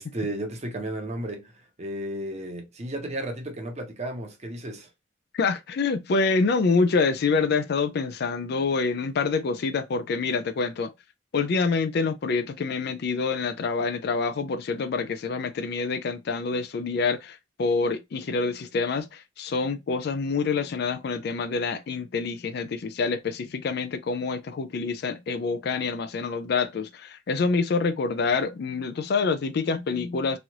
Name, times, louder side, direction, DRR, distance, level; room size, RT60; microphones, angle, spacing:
voice 1, 0.0-1.5 1.8-4.9, right 1 dB, 35° right, 0.8 m, -33 dB
voice 2, 5.3-10.9 11.3-30.4, left 4 dB, 60° left, 0.4 m, -26 dB
3.1 x 2.5 x 2.8 m
head